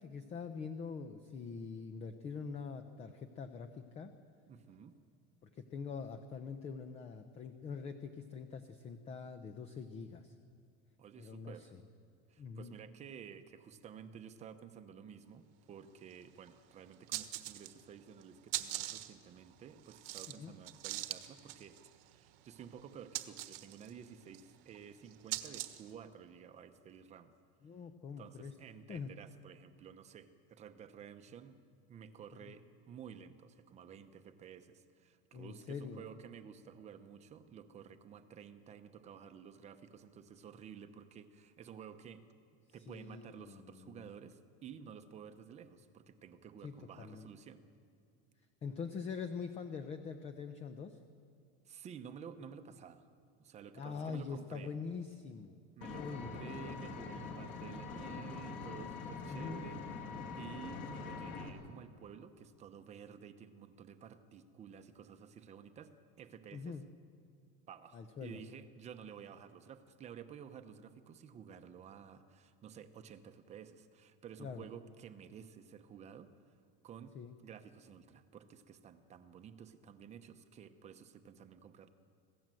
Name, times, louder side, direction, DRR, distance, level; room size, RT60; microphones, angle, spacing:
voice 1, 0.0-4.1 5.4-10.3 11.2-11.8 12.4-12.8 20.3-20.5 27.6-28.5 28.9-29.1 32.5-32.6 35.3-36.1 42.9-44.1 46.6-47.3 48.6-51.0 53.8-55.6 55.9-56.3 59.3-59.6 66.5-66.8 67.9-68.4 74.4-74.7 77.1-77.3, left 5 dB, 20° left, 9 dB, 0.7 m, -44 dB
voice 2, 4.5-5.0 11.0-11.7 12.3-21.8 22.0-27.3 28.2-31.6 31.9-42.2 42.7-47.6 51.7-53.1 53.4-54.7 55.8-65.9 66.2-66.8 67.7-76.3 76.8-77.2 77.4-81.9, right 7 dB, 20° right, 9 dB, 0.9 m, -52 dB
sound 1, 16.1-16.2 16.5-16.6 16.9-17.9 18.2-25.9, right 16 dB, 75° right, 1.4 m, -43 dB
Vehicle, 55.8-61.5, left 4 dB, 40° left, 2.7 m, -44 dB
26.5 x 16.5 x 7.7 m, 2.4 s
cardioid pair, 175°, 30 cm